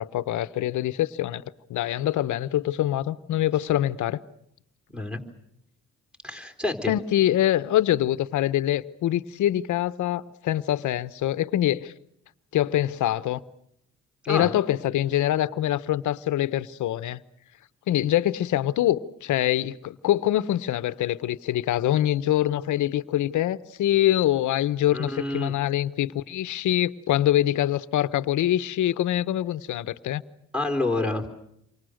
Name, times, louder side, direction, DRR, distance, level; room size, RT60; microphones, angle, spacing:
voice 1, 0.0-1.4 1.7-4.2 6.9-11.9 12.5-13.4 14.3-17.2 17.9-30.2, left 13 dB, 75° left, 1.0 m, -24 dB
voice 2, 6.2-6.9 14.2-14.5 24.9-25.5 30.5-31.3, left 2 dB, 5° right, 3.9 m, -28 dB
28.5 x 24.5 x 6.5 m
cardioid pair, 90°, 30 cm